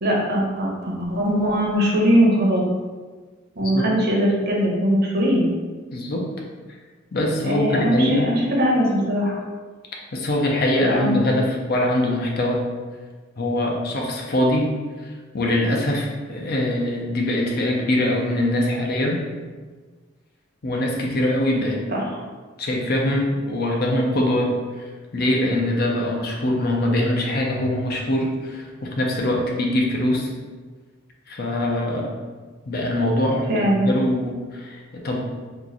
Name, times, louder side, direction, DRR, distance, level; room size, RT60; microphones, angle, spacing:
voice 1, 0.0-2.6 3.6-5.5 7.5-9.4 10.9-11.1 21.9-22.0 33.5-33.9, equal, 55° right, -3 dB, 0.9 m, -20 dB
voice 2, 5.9-6.3 7.1-8.3 10.1-12.6 13.4-14.7 15.3-19.2 20.6-21.8 22.6-24.5 25.1-30.3 31.3-32.1 32.7-35.2, left 1 dB, 55° left, 0 dB, 0.6 m, -23 dB
3.0 x 2.4 x 3.9 m, 1.4 s
head